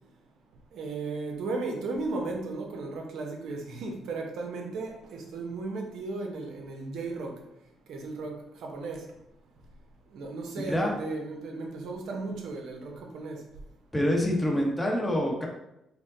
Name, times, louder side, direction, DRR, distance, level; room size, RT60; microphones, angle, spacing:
voice 1, 0.7-7.3 7.9-9.0 10.1-13.4, right 3 dB, 75° right, 2 dB, 0.8 m, -35 dB
voice 2, 13.9-15.5, left 1 dB, 10° left, -1 dB, 0.8 m, -26 dB
4.5 x 2.2 x 3.8 m, 0.85 s
cardioid pair, 90°, 0 cm